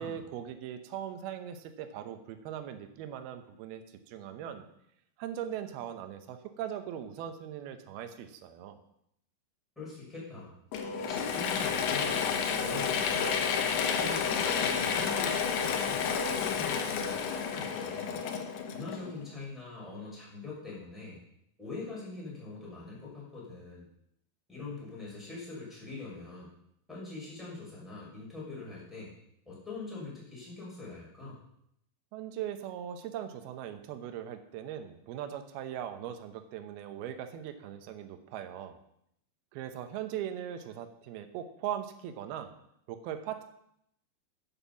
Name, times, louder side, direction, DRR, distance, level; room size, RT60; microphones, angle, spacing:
voice 1, 0.0-4.6 5.2-8.8 32.1-38.8 39.5-42.5 42.9-43.4, right 10 dB, 75° right, 8 dB, 2.4 m, -40 dB
voice 2, 9.8-10.6 11.0-13.2 13.9-18.2 18.7-21.2 21.6-23.9 24.5-26.5 26.9-29.1 29.5-31.4, left 3 dB, ahead, -7 dB, 5.8 m, -43 dB
Mechanisms / Drill, 10.7-19.3, left 6 dB, 70° left, 2.8 m, -30 dB
11.0 x 9.4 x 7.1 m, 0.75 s
omnidirectional pair, 5.6 m